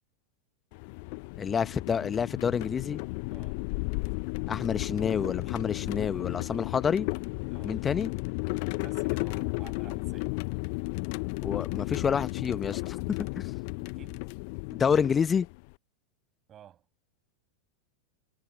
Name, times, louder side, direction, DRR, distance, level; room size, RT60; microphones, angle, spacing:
sound 1, 0.7-15.7, left 33 dB, 45° left, 0.4 m, -34 dB
voice 1, 1.4-3.0 4.5-7.1 7.6-8.1 11.4-13.5 14.7-15.5, left 7 dB, 20° left, 1.1 m, -28 dB
voice 2, 3.3-3.6 7.5-7.8 8.8-10.4 13.9-14.3 16.5-16.8, right 10 dB, 30° right, 5.8 m, -52 dB
figure-of-eight pair, 90°, 0 cm